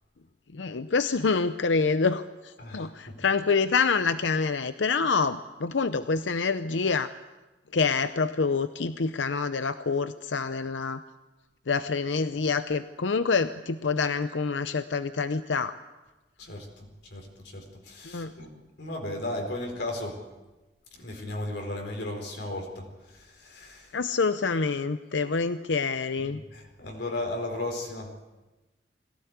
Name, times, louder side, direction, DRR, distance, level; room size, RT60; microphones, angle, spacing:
voice 1, 0.5-7.1 7.7-11.0 11.7-15.8 18.0-18.3 23.9-26.4, left 4 dB, 90° left, 11 dB, 0.7 m, -27 dB
voice 2, 2.6-3.2 16.4-18.5 18.8-20.2 20.9-24.0 26.2-28.1, left 1 dB, 65° left, 1 dB, 4.3 m, -36 dB
22.0 x 17.5 x 8.2 m, 1.1 s
head